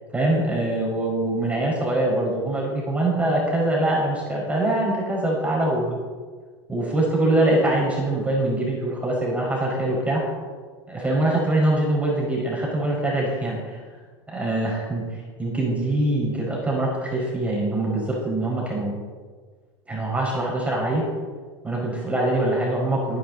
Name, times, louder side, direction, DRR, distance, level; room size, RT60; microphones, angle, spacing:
voice 1, 0.1-6.0 6.7-10.3 10.9-13.8 14.3-18.9 19.9-21.1 21.6-23.2, right 1 dB, 10° right, -4 dB, 5.2 m, -23 dB
21.0 x 10.0 x 4.1 m, 1.5 s
hypercardioid pair, 90°, 14 cm